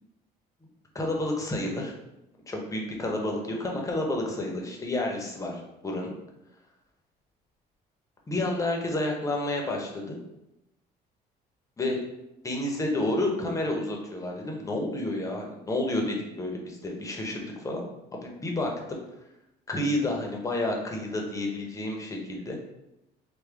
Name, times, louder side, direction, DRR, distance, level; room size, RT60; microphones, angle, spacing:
voice 1, 0.9-1.9 2.5-6.2 8.3-10.2 11.8-12.0 12.4-19.0 19.7-22.6, left 1 dB, 20° left, 0 dB, 0.7 m, -30 dB
3.5 x 2.2 x 3.3 m, 0.90 s
cardioid pair, 110°, 17 cm